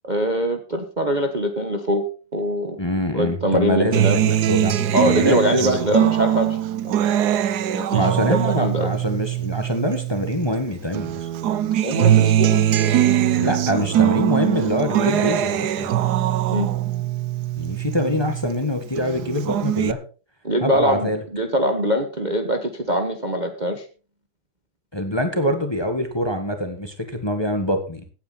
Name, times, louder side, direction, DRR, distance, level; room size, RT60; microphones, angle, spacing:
voice 1, 0.0-2.0 2.3-2.8 3.1-4.2 4.9-6.6 6.8-6.9 7.7-8.9 11.8-12.6 16.5-16.7 20.4-23.8, equal, 25° right, 5 dB, 1.2 m, -23 dB
voice 2, 2.8-5.8 7.9-11.3 13.4-15.9 17.6-20.0 20.6-21.2 24.9-28.0, left 1 dB, 15° left, 6 dB, 1.5 m, -24 dB
Acoustic guitar, 3.9-10.6 10.9-18.6 19.0-19.9, right 11 dB, 65° right, 1.2 m, -21 dB
17.0 x 9.3 x 4.2 m, 0.36 s
omnidirectional pair, 2.1 m